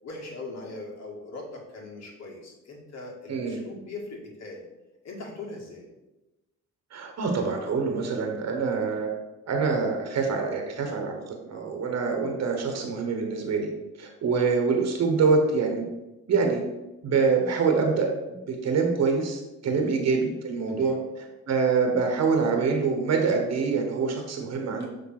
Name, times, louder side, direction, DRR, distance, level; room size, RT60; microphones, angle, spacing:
voice 1, 0.0-4.6 5.0-5.8 19.6-19.9 20.7-21.0, left 2 dB, 60° left, -2 dB, 2.1 m, -40 dB
voice 2, 3.3-3.6 6.9-9.1 9.5-13.7 14.0-15.8 16.3-16.6 17.0-21.0 21.5-24.9, right 4 dB, 60° right, 3 dB, 1.2 m, -25 dB
6.3 x 3.4 x 5.8 m, 1.0 s
cardioid pair, 90°, 30 cm